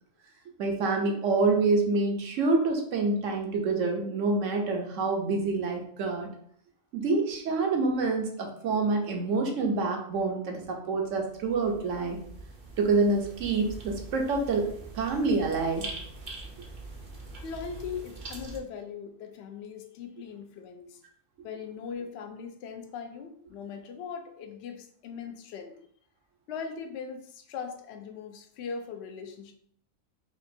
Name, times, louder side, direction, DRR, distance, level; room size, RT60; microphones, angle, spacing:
voice 1, 0.6-6.3 6.9-12.2 12.8-14.7 14.9-15.8, right 3 dB, 70° right, 2 dB, 1.0 m, -27 dB
sound 1, 11.0-18.6, right 3 dB, 50° right, 0.7 m, -43 dB
voice 2, 17.4-21.0 21.4-25.7 26.5-29.5, left 6 dB, 65° left, 5 dB, 0.8 m, -40 dB
5.1 x 2.4 x 2.6 m, 0.64 s
omnidirectional pair, 1.4 m